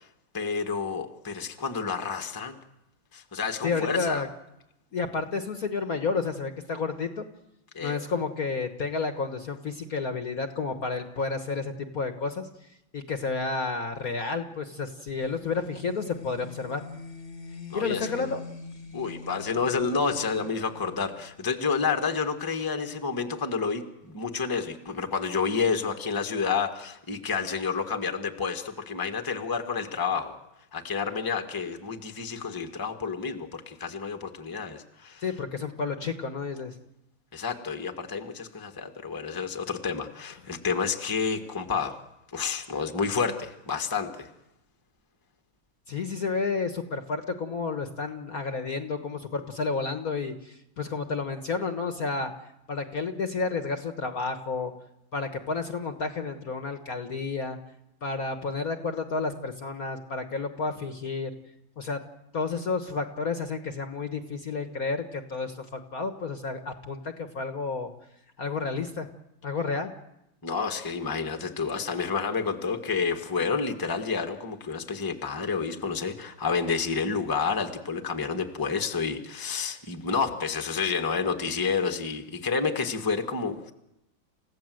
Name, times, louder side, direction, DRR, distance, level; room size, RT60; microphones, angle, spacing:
voice 1, 0.3-2.6 3.1-4.2 7.7-8.0 17.7-18.3 18.9-30.3 30.7-35.2 37.3-41.9 42.3-44.3 70.4-83.7, left 5 dB, 10° left, 5 dB, 1.3 m, -29 dB
voice 2, 3.6-4.3 4.9-7.2 7.8-12.5 12.9-16.8 17.7-18.4 35.2-36.7 45.9-52.3 52.7-54.7 55.1-57.6 58.0-61.3 61.8-62.0 62.3-67.9 68.4-69.1 69.4-69.9, left 4 dB, 45° left, 7 dB, 1.5 m, -31 dB
sound 1, 15.1-21.7, left 4 dB, 30° left, 1.5 m, -44 dB
29.5 x 16.0 x 7.8 m, 0.87 s
omnidirectional pair, 2.4 m